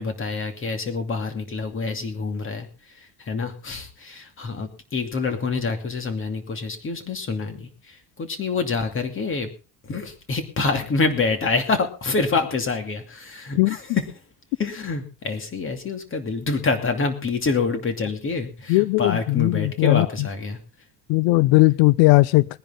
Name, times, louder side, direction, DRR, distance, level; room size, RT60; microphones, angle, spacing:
voice 1, 0.0-9.5 9.8-14.0 14.6-20.6, left 4 dB, 30° left, 6 dB, 2.6 m, -26 dB
voice 2, 18.7-20.1 21.1-22.5, left 21 dB, 90° left, 21 dB, 0.6 m, -17 dB
21.5 x 10.5 x 3.7 m, 0.33 s
cardioid pair, 160°, 43 cm